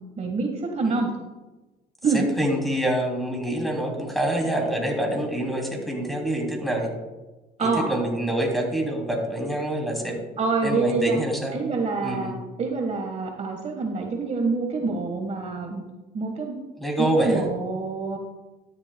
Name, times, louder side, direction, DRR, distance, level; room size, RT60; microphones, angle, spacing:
voice 1, 0.2-1.1 2.0-2.3 7.6-7.9 10.4-11.2 11.5-15.8 16.1-16.6 17.0-18.2, right 4 dB, 40° right, 3 dB, 1.4 m, -26 dB
voice 2, 2.4-6.9 7.6-10.2 10.6-11.6 12.0-12.3 16.8-17.5, right 1 dB, ahead, 0 dB, 2.9 m, -26 dB
13.0 x 10.5 x 2.3 m, 1.1 s
cardioid pair, 110°, 17 cm